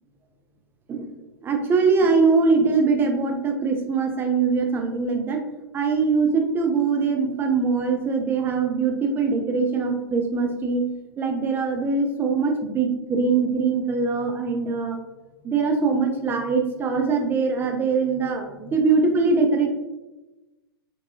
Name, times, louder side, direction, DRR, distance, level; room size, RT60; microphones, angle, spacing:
voice 1, 1.4-5.4 5.7-10.8 11.2-15.0 15.4-19.7, right 4 dB, 15° right, 3 dB, 0.5 m, -22 dB
3.4 x 2.6 x 2.7 m, 1.1 s
figure-of-eight pair, 105°, 13 cm